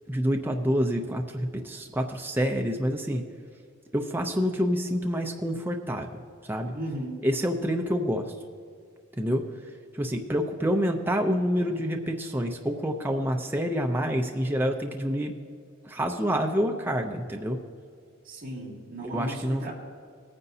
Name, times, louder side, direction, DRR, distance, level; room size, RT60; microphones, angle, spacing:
voice 1, 0.1-3.2 3.9-6.1 6.4-6.7 7.2-8.3 9.2-9.5 9.9-15.4 15.8-17.6 19.1-19.7, equal, 10° right, 3 dB, 0.5 m, -27 dB
voice 2, 6.7-7.2 18.2-19.7, right 1 dB, 40° right, -5 dB, 2.4 m, -35 dB
18.0 x 9.6 x 2.7 m, 2.2 s
head